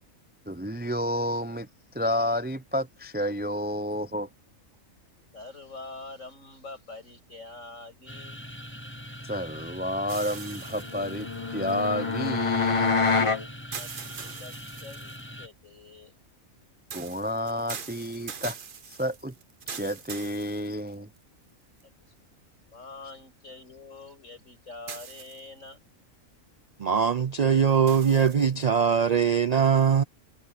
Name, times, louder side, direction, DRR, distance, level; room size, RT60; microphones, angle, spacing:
voice 1, 0.5-1.7 1.9-4.3 9.2-13.1 16.9-18.6 18.9-19.3 19.7-21.1, equal, 10° right, 0.4 m, -30 dB
voice 2, 5.3-8.4 13.8-14.6 14.8-16.1 22.7-25.8, left 3 dB, 70° left, 6.9 m, -45 dB
sound 1, 8.1-15.5, equal, 10° left, 6.4 m, -42 dB
sound 2, 10.1-12.3 13.7-15.3 16.9-21.2 21.8-21.9 24.9-25.7 27.9-28.6, right 6 dB, 45° right, 1.0 m, -42 dB
sound 3, 10.8-13.4, left 4 dB, 25° left, 0.9 m, -26 dB
voice 3, 26.8-30.0, right 7 dB, 80° right, 0.3 m, -22 dB
omnidirectional pair, 1.4 m